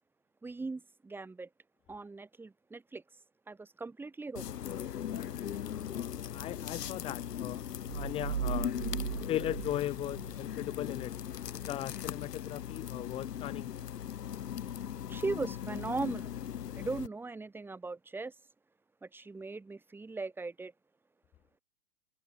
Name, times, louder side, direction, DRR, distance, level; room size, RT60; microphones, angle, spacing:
voice 1, 0.4-1.5 1.9-3.0 3.5-4.4 15.1-16.3 16.8-18.3 19.0-20.7, right 3 dB, 5° right, 3.4 m, -39 dB
sound 1, 4.4-17.1, left 10 dB, 75° left, 4.0 m, -39 dB
voice 2, 5.9-7.6 7.9-8.8 9.3-11.1 11.6-13.8, left 13 dB, 10° left, 1.3 m, -38 dB
sound 2, 7.9-10.8, right 10 dB, 75° right, 3.9 m, -37 dB
hypercardioid pair, 170°, 48 cm